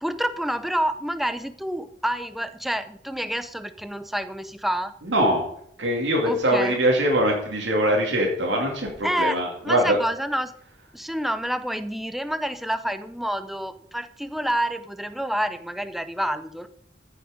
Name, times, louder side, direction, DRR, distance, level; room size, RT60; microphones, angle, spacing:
voice 1, 0.0-4.9 6.2-6.8 9.0-10.5 10.9-16.7, equal, ahead, 11 dB, 0.5 m, -28 dB
voice 2, 5.0-5.5 5.8-10.0, right 1 dB, 80° right, -1 dB, 2.5 m, -22 dB
14.5 x 6.5 x 5.1 m, 0.67 s
head